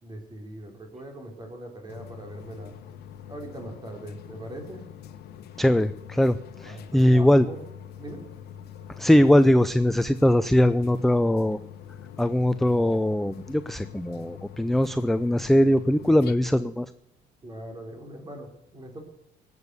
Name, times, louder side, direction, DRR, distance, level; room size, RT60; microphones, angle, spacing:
voice 1, 0.0-2.8 3.3-4.9 6.6-7.6 8.0-8.2 17.4-19.0, right 1 dB, 25° right, 4 dB, 3.6 m, -41 dB
sound 1, 1.9-16.3, left 9 dB, 70° left, 1.1 m, -44 dB
voice 2, 5.6-7.5 9.0-11.6 12.2-16.9, left 1 dB, ahead, 13 dB, 0.5 m, -21 dB
19.5 x 8.2 x 6.8 m, 0.84 s
cardioid pair, 110°, 17 cm